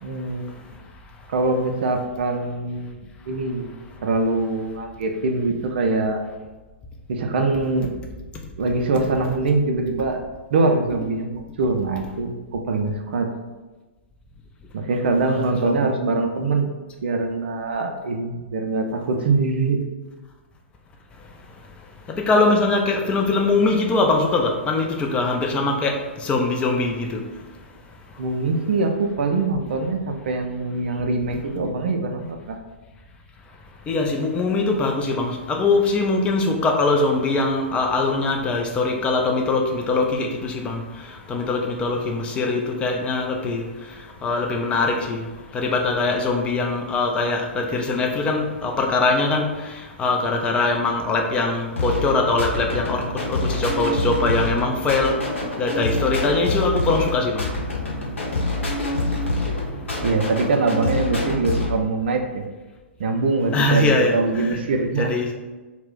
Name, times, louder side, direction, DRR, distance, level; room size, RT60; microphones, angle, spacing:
voice 1, 0.0-0.5 1.3-3.0 3.3-3.7 4.0-6.2 7.1-7.9 8.6-10.2 10.5-13.3 14.7-16.7 17.0-19.8 28.2-32.6 60.0-62.4 63.0-65.1, right 3 dB, 55° right, 4 dB, 0.4 m, -23 dB
voice 2, 22.1-27.3 33.9-45.3 45.5-57.5 63.5-64.2 65.0-65.3, left 3 dB, 15° left, 2 dB, 0.4 m, -22 dB
sound 1, 51.8-61.8, left 2 dB, 70° left, 0.8 m, -26 dB
2.3 x 2.0 x 3.6 m, 1.2 s
figure-of-eight pair, 110°, 7 cm